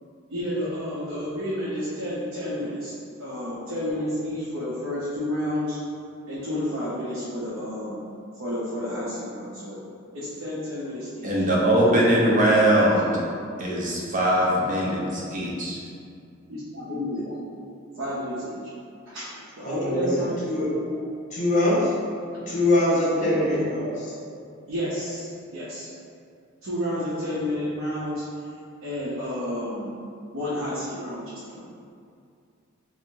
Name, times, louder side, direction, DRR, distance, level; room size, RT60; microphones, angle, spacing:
voice 1, 0.3-2.9 3.2-5.8 6.3-8.0 8.4-9.8 10.1-12.8 16.5-17.4 17.9-18.6 19.1-20.4 20.9-21.1 22.5-22.6 23.7-23.9 24.7-25.9 26.6-28.2 28.8-29.9 30.3-31.7, left 1 dB, 85° right, -9 dB, 0.7 m, -31 dB
voice 2, 11.2-13.1 13.6-15.8, right 1 dB, 40° right, -4 dB, 0.6 m, -21 dB
voice 3, 19.6-20.7 21.3-21.9 22.5-23.9, left 1 dB, 40° left, -7 dB, 1.0 m, -23 dB
4.4 x 2.0 x 2.6 m, 2.4 s
head